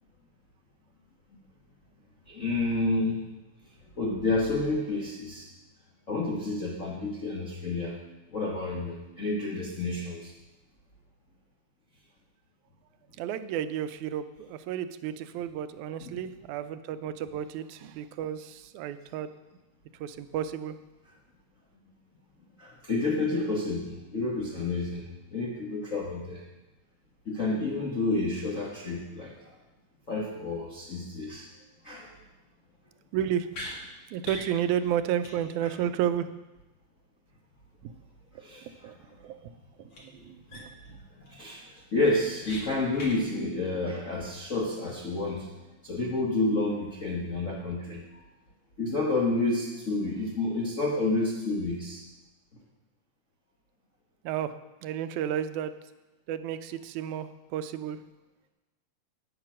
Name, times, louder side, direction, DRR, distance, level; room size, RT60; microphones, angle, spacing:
voice 1, 2.3-3.3 4.0-5.5 6.1-8.0 8.3-10.3 16.0-16.2 22.6-26.4 27.2-29.6 30.1-31.5 31.8-32.1 35.6-35.7 38.3-39.1 40.1-40.3 41.2-45.5 45.8-48.2 48.8-52.0, left 2 dB, 70° left, -4 dB, 0.7 m, -30 dB
voice 2, 13.2-19.3 20.0-20.8 33.1-33.5 34.1-36.3 37.8-37.9 38.8-38.9 39.2-39.5 39.8-39.9 40.3-40.7 54.2-54.6 54.8-55.7 56.3-58.0, right 10 dB, 90° right, 11 dB, 2.0 m, -32 dB
sound 1, 33.5-33.7 34.2-34.5 34.8-34.9 35.2-35.3 35.6-35.7 39.9-40.0 40.5-40.9 41.3-41.4 41.7-42.6 42.9-43.2, left 1 dB, 50° left, 2.6 m, -40 dB
9.2 x 8.9 x 6.2 m, 1.0 s
omnidirectional pair, 3.4 m